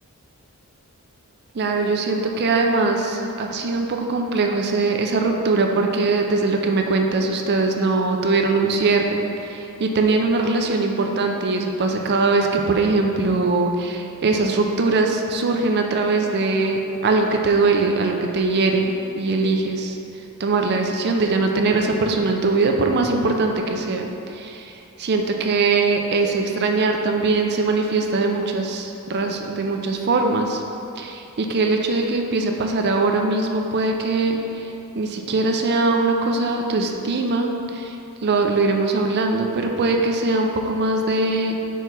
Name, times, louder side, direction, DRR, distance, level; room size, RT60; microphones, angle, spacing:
voice 1, 1.5-30.6 31.0-41.6, right 3 dB, 45° right, 3 dB, 0.5 m, -21 dB
4.6 x 4.5 x 5.3 m, 2.7 s
head